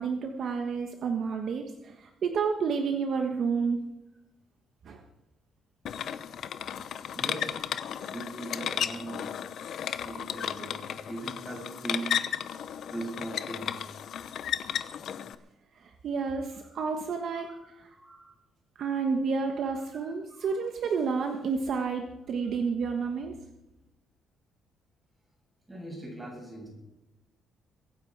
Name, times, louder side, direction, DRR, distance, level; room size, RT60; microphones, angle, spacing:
voice 1, 0.0-3.8 4.8-5.0 16.0-17.5 18.8-23.3, right 5 dB, 55° right, 4 dB, 1.3 m, -30 dB
sound 1, 5.9-15.3, left 9 dB, 60° left, 0.8 m, -34 dB
voice 2, 7.1-7.6 8.1-9.3 9.9-12.3 12.9-13.9 16.7-16.8 17.3-18.3 20.3-20.6 25.7-26.7, right 1 dB, 10° right, -1 dB, 6.7 m, -40 dB
23.0 x 10.0 x 4.7 m, 0.97 s
cardioid pair, 160°, 0 cm